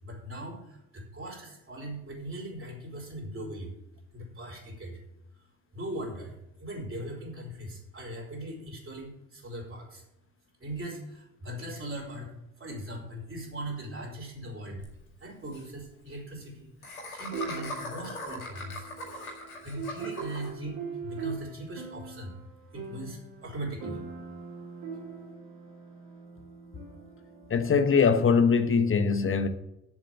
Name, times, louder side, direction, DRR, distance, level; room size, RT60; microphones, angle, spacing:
voice 1, 0.0-3.7 4.1-5.0 5.7-6.3 6.6-10.0 10.6-14.8 15.2-18.9 19.6-22.3 22.7-24.0, right 1 dB, 30° right, 4.8 m, -40 dB
Laughter, 14.8-14.9 15.1-15.2 15.4-15.6 16.8-20.5, left 1 dB, 90° left, 2.1 m, -40 dB
sound 1, 15.8-15.9 17.3-28.5, right 5 dB, 55° right, 3.6 m, -42 dB
voice 2, 27.5-29.5, left 5 dB, 30° left, 1.2 m, -22 dB
7.5 x 7.4 x 7.9 m
figure-of-eight pair, 50°, 41 cm